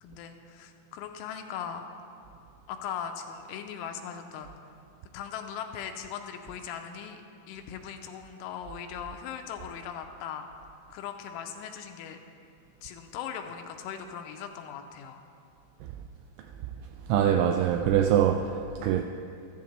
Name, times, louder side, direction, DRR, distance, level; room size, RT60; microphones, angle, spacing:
voice 1, 0.0-1.9 2.7-4.5 5.1-7.2 7.5-10.5 10.9-12.2 12.8-15.2, left 8 dB, 85° left, 3.0 m, -39 dB
voice 2, 17.1-19.0, right 9 dB, 85° right, 2.8 m, -24 dB
14.0 x 13.5 x 3.3 m
omnidirectional pair, 5.6 m